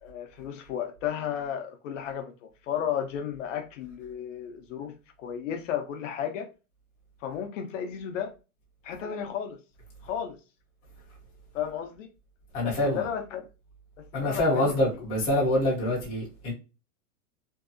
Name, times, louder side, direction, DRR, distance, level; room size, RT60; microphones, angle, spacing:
voice 1, 0.0-6.5 7.2-8.3 8.8-9.6 10.0-10.4 11.5-12.1 12.6-13.4 14.0-15.1, left 9 dB, 60° left, 0.6 m, -34 dB
voice 2, 12.5-13.0 14.1-16.5, left 1 dB, 15° left, 0.5 m, -25 dB
2.6 x 2.3 x 2.4 m
supercardioid pair, 165°, 44 cm